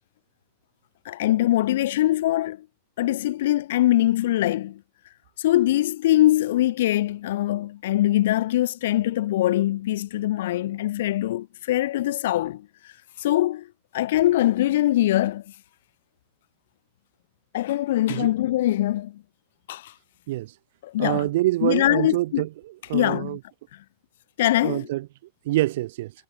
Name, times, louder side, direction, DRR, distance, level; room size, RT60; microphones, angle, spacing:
voice 1, 1.1-2.7 3.0-4.8 5.4-12.7 13.2-13.7 13.9-15.4 17.5-19.2 19.7-19.9 20.8-21.3 21.6-22.4 22.9-23.4 24.4-24.9, left 14 dB, 55° left, 0.4 m, -22 dB
voice 2, 21.0-23.4 24.6-25.1 25.4-26.1, right 16 dB, 55° right, 0.7 m, -26 dB
figure-of-eight pair, 90°, 0 cm